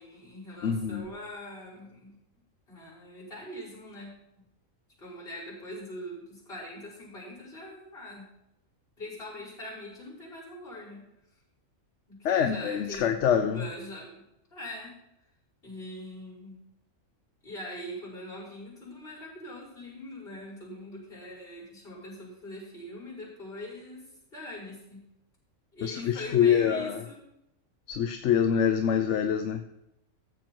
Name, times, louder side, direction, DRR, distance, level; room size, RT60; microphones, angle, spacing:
voice 1, 0.0-2.1 2.7-4.1 5.0-8.3 9.0-11.0 12.1-14.2 14.5-14.9 15.6-16.6 17.4-24.0 24.3-25.0 25.7-27.2, left 1 dB, 45° left, -9 dB, 5.8 m, -42 dB
voice 2, 0.6-1.1 12.2-13.7 25.8-27.0 27.9-29.6, left 8 dB, 65° left, 7 dB, 0.9 m, -25 dB
14.5 x 7.6 x 4.5 m, 0.86 s
omnidirectional pair, 1.4 m